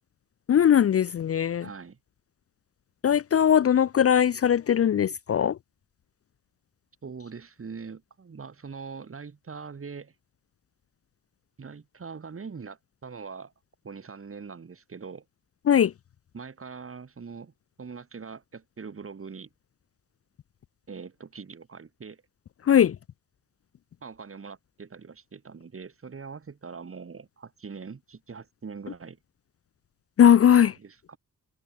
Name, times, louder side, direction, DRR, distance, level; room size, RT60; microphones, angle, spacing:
voice 1, 0.5-1.7 3.0-5.6 15.7-15.9 22.7-23.0 30.2-30.7, left 9 dB, 45° left, 0.4 m, -20 dB
voice 2, 1.6-2.0 7.0-10.1 11.6-13.5 13.8-15.2 16.3-17.5 17.8-19.5 20.9-22.2 24.0-29.2 30.8-31.2, right 5 dB, 40° right, 3.3 m, -42 dB
wide cardioid pair, 120°, 33 cm